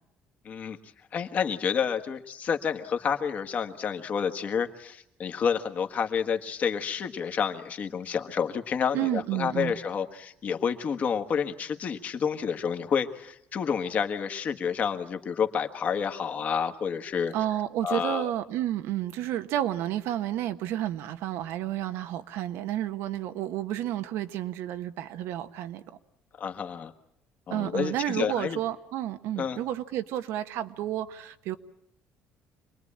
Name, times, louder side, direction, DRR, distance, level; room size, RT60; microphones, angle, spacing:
voice 1, 0.4-0.8 1.1-17.3 17.8-18.3 26.4-26.9 27.5-28.6 29.4-29.6, left 7 dB, 40° left, 1.6 m, -29 dB
voice 2, 8.9-9.7 17.3-25.8 27.5-31.6, right 12 dB, 85° right, 1.3 m, -31 dB
26.5 x 20.5 x 8.7 m
cardioid pair, 155°, 4 cm